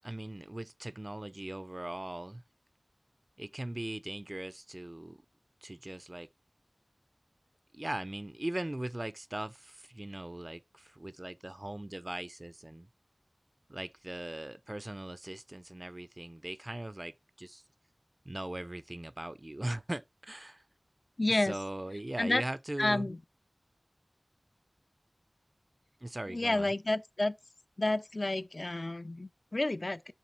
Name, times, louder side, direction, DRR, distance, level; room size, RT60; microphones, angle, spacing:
voice 1, 0.0-2.4 3.4-5.2 5.6-6.3 7.7-12.9 13.7-17.6 18.3-20.6 21.3-23.1 26.0-26.7, right 1 dB, 35° right, 0.5 m, -40 dB
voice 2, 21.2-21.5 22.2-22.4 22.8-23.2 26.3-27.3 27.8-30.1, left 2 dB, 55° left, 0.5 m, -30 dB
7.3 x 3.2 x 6.1 m
wide cardioid pair, 45°, 0 cm